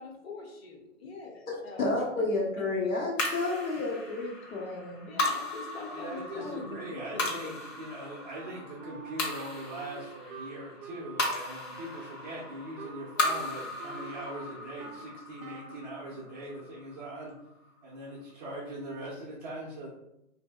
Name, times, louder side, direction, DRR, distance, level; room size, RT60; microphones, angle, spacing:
voice 1, 0.0-1.9 5.1-7.6, left 3 dB, 50° left, 1 dB, 0.6 m, -43 dB
voice 2, 1.5-5.1, left 2 dB, 90° left, -2 dB, 1.0 m, -31 dB
sound 1, 3.2-17.7, left 2 dB, 65° left, 1.0 m, -37 dB
voice 3, 5.9-17.3 17.8-19.9, right 1 dB, 30° right, -6 dB, 0.5 m, -41 dB
Wind instrument woodwind instrument, 8.3-15.1 15.4-15.8, right 6 dB, 80° right, 0.5 m, -46 dB
2.9 x 2.6 x 2.3 m, 0.83 s
hypercardioid pair, 145°, 40 cm